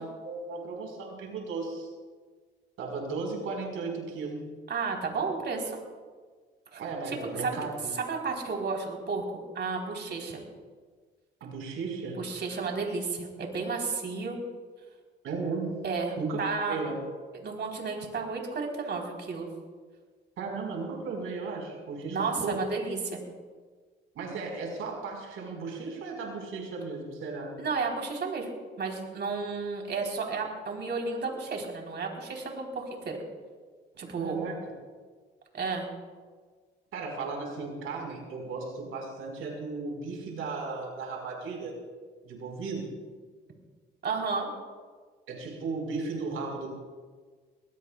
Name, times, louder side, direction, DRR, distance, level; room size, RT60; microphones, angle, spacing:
voice 1, 0.0-1.9 2.8-4.4 6.8-7.9 11.4-12.2 15.2-15.7 16.2-16.4 16.7-17.0 20.4-22.6 24.1-27.5 34.2-34.6 36.9-41.8 42.2-42.9 45.3-46.7, right 4 dB, 85° right, 0 dB, 5.0 m, -35 dB
voice 2, 4.7-5.8 6.7-6.8 7.1-7.6 7.9-10.4 12.2-14.4 15.8-16.8 17.4-19.5 22.1-23.2 27.6-28.5 28.8-33.2 34.0-34.4 35.5-35.9 44.0-44.5, right 4 dB, 55° right, 1 dB, 4.1 m, -32 dB
21.0 x 20.5 x 2.4 m, 1.5 s
cardioid pair, 90°, 21 cm